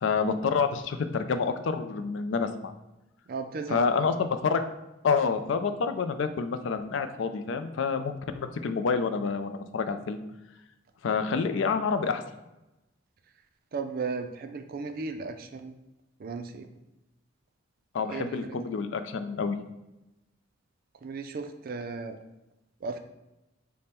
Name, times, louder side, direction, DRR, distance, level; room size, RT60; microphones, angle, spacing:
voice 1, 0.0-2.7 3.7-4.6 5.0-10.2 11.0-12.2 17.9-19.6, left 5 dB, 65° left, 9 dB, 0.4 m, -28 dB
voice 2, 3.3-4.1 13.7-15.7 16.2-16.7 18.1-18.6 21.0-22.2 22.8-23.0, right 4 dB, 50° right, 8 dB, 0.4 m, -35 dB
5.1 x 2.1 x 4.2 m, 0.96 s
head